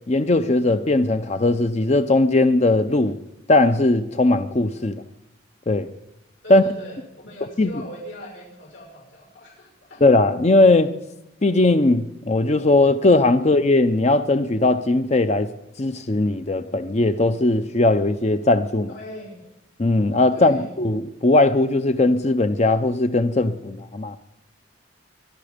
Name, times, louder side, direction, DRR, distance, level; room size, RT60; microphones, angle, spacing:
voice 1, 0.1-3.2 3.5-5.0 5.7-5.9 6.5-6.6 7.6-7.7 10.0-10.9 11.4-15.5 15.8-18.9 19.8-24.2, left 2 dB, 35° left, 0.6 m, -19 dB
voice 2, 6.4-10.0 13.4-13.6 18.9-19.4 20.3-20.8, left 1 dB, 75° left, 6.5 m, -40 dB
24.0 x 10.5 x 5.1 m
head